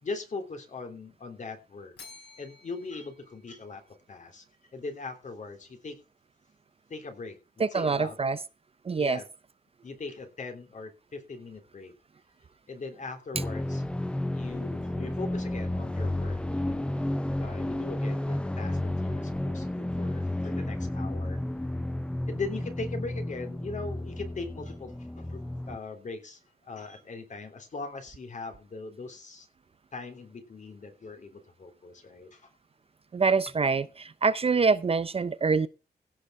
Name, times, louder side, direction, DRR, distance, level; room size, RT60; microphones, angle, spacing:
voice 1, 0.0-1.9 2.4-3.8 4.1-6.0 6.9-8.2 9.0-9.3 9.8-11.9 12.7-13.8 14.3-17.1 17.4-21.4 22.3-25.4 25.7-29.5 29.9-32.5, left 3 dB, 45° left, 3.4 m, -40 dB
Bell, 2.0-4.2, left 4 dB, 80° left, 5.9 m, -52 dB
voice 2, 7.6-8.4 8.9-9.2 33.1-35.7, right 4 dB, 35° right, 0.6 m, -25 dB
sound 1, 13.3-25.8, left 1 dB, 5° left, 0.5 m, -32 dB
16.5 x 6.7 x 4.8 m
wide cardioid pair, 150°, 17 cm